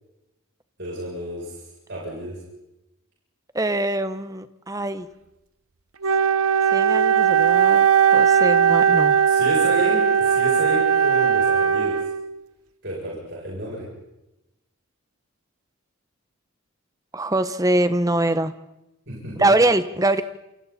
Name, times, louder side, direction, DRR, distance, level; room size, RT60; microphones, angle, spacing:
voice 1, 0.8-1.6 1.9-2.4 9.3-12.0 12.8-13.9 19.1-19.5, right 1 dB, 55° right, -5 dB, 7.6 m, -31 dB
voice 2, 3.5-5.1 6.7-9.1 17.1-18.5 19.4-20.2, right 2 dB, 15° right, 11 dB, 0.9 m, -23 dB
Wind instrument woodwind instrument, 6.0-12.4, right 7 dB, 80° right, 0.9 m, -18 dB
28.5 x 28.5 x 4.3 m, 0.92 s
head